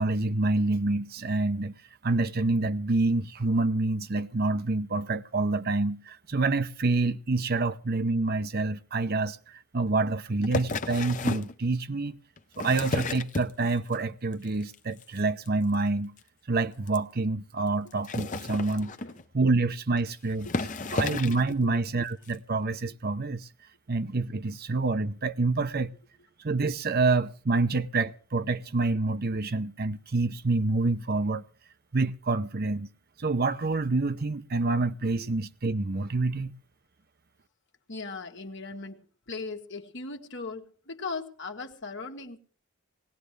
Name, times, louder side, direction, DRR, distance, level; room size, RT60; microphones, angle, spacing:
voice 1, 0.0-1.7 2.0-12.2 12.6-16.1 16.5-18.9 19.3-20.5 20.9-23.5 23.9-25.9 26.4-31.4 31.9-32.9 33.2-36.5, right 3 dB, 45° right, 0.7 m, -27 dB
sound 1, 10.4-11.5 12.4-13.9 14.3-14.7 15.0-15.2 15.4-15.5 15.7-15.8 16.2-16.3 16.9-17.0 17.9-19.3 20.0-20.1 20.4-21.5 22.3-22.4, left 3 dB, 35° left, 0.8 m, -32 dB
voice 2, 37.9-42.4, left 3 dB, 55° left, 1.7 m, -38 dB
20.0 x 18.0 x 3.3 m
head